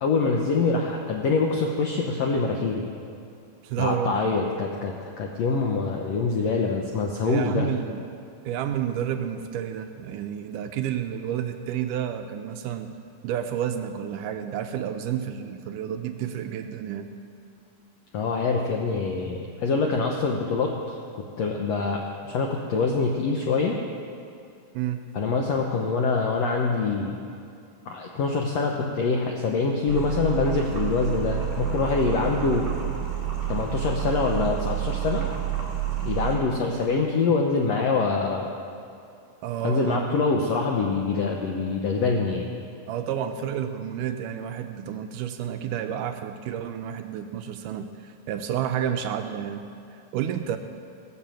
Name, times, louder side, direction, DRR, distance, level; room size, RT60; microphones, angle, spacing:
voice 1, 0.0-2.8 3.8-7.7 18.1-21.0 21.4-23.8 25.1-27.2 27.9-32.7 33.5-35.2 36.0-38.5 39.6-42.5, left 4 dB, 85° left, 1 dB, 1.4 m, -25 dB
voice 2, 3.6-4.3 7.2-8.0 8.5-12.9 13.2-17.1 24.7-25.1 39.4-40.0 42.9-50.6, right 9 dB, 85° right, 7 dB, 1.9 m, -30 dB
sound 1, 29.9-36.4, right 11 dB, 35° right, 2.4 m, -29 dB
19.5 x 7.5 x 7.5 m, 2.5 s
omnidirectional pair, 4.3 m